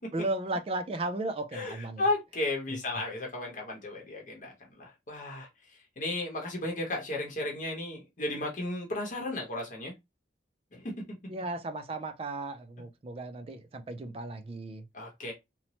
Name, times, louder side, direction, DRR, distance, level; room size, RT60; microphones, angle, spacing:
voice 1, 0.1-2.0 11.3-14.8, right 2 dB, 30° right, 0.3 m, -35 dB
voice 2, 1.5-5.5 6.0-9.9 10.7-10.9 14.9-15.3, left 2 dB, 45° left, 0.8 m, -34 dB
3.0 x 2.0 x 2.8 m
head